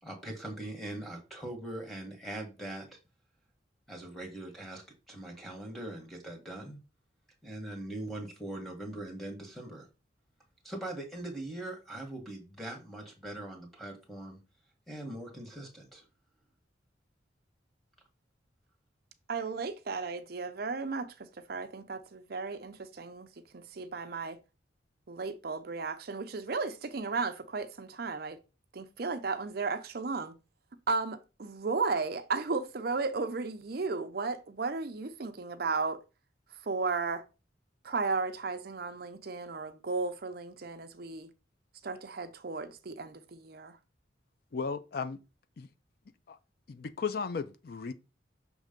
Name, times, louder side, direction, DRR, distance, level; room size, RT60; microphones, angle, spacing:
voice 1, 0.0-3.0 3.9-6.8 7.4-9.9 10.6-14.4 14.9-16.0, right 1 dB, ahead, 1.5 m, -41 dB
voice 2, 19.3-23.3 23.5-24.4 25.1-28.4 28.7-30.3 30.9-36.0 36.6-37.2 37.8-41.3 41.8-43.8, right 4 dB, 55° right, 0.6 m, -34 dB
voice 3, 44.5-45.2 45.6-45.7 46.3-46.4 46.7-47.9, left 5 dB, 50° left, 0.4 m, -35 dB
6.2 x 3.2 x 5.1 m
head